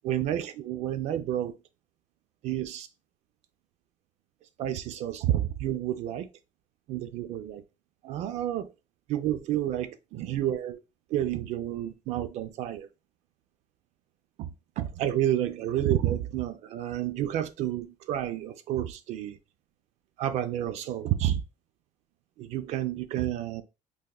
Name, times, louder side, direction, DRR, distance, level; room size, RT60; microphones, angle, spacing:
voice 1, 0.0-1.6 2.4-2.9 4.6-6.3 6.9-7.6 8.0-8.7 9.1-10.8 11.1-12.9 14.4-19.4 20.2-21.4 22.4-23.6, right 12 dB, 60° right, 0.4 m, -30 dB
3.4 x 2.8 x 2.3 m
cardioid pair, 175°, 13 cm